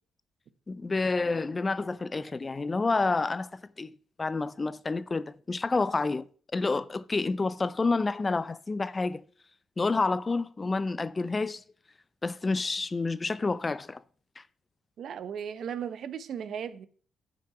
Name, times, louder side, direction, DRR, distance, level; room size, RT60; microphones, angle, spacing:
voice 1, 0.7-3.9 4.2-6.3 6.5-9.2 9.8-11.6 12.2-14.0 14.4-14.5, left 3 dB, 25° left, 0.4 m, -29 dB
voice 2, 15.0-16.9, right 8 dB, 65° right, 0.9 m, -36 dB
9.3 x 5.9 x 6.0 m
cardioid pair, 90°, 0 cm